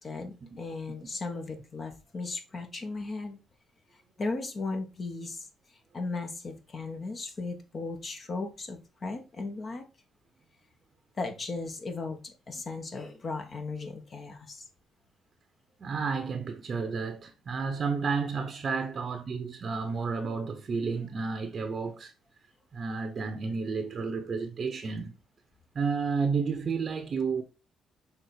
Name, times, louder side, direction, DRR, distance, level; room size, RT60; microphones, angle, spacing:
voice 1, 0.0-3.4 4.2-5.5 5.9-9.8 11.2-14.6, left 3 dB, 40° left, 1.5 m, -36 dB
voice 2, 15.8-22.1 22.7-25.1 25.7-27.4, right 5 dB, 45° right, 0.8 m, -31 dB
6.2 x 3.6 x 4.5 m
cardioid pair, 90°, 0 cm